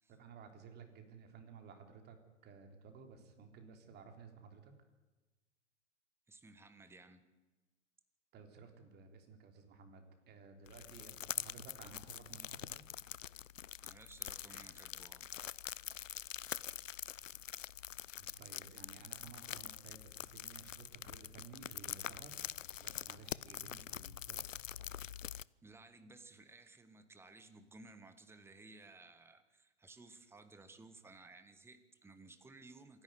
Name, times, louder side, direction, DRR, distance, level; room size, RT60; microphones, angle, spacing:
voice 1, 0.1-2.2 2.4-4.7 8.3-12.9 18.2-22.5 22.8-24.4, right 5 dB, 25° right, 5 dB, 3.5 m, -55 dB
voice 2, 6.3-7.2 13.8-15.3 25.6-33.0, right 3 dB, 5° right, 10 dB, 1.5 m, -57 dB
sound 1, 10.7-25.4, left 10 dB, 85° left, 0.6 m, -45 dB
26.5 x 11.0 x 9.3 m, 1.2 s
hypercardioid pair, 115°, 37 cm